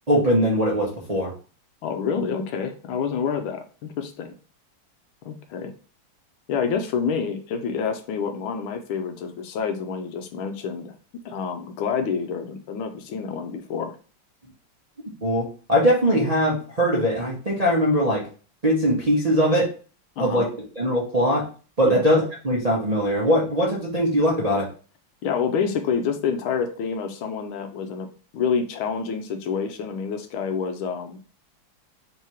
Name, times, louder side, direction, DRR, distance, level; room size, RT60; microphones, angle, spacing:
voice 1, 0.1-1.3 15.2-18.3 18.6-19.7 20.2-20.5 20.8-21.4 21.8-24.7, equal, 55° right, -5 dB, 0.4 m, -21 dB
voice 2, 1.8-4.3 5.3-5.7 6.5-10.9 11.2-14.0 20.2-20.5 21.9-22.0 25.2-28.1 28.3-31.2, left 6 dB, 75° left, 6 dB, 1.4 m, -28 dB
3.8 x 2.9 x 4.6 m, 0.38 s
omnidirectional pair, 2.4 m